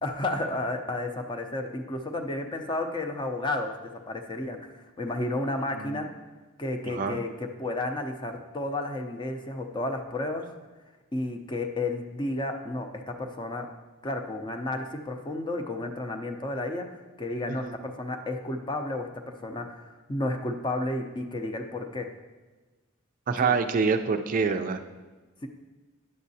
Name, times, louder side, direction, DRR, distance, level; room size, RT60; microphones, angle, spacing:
voice 1, 0.0-3.7 4.1-6.1 6.6-10.5 11.1-13.7 14.0-22.1 23.4-23.5, left 2 dB, 20° left, 4 dB, 0.6 m, -32 dB
voice 2, 6.9-7.2 17.5-17.8 23.3-24.8, right 5 dB, 40° right, 7 dB, 0.3 m, -26 dB
9.6 x 7.3 x 2.7 m, 1.3 s
head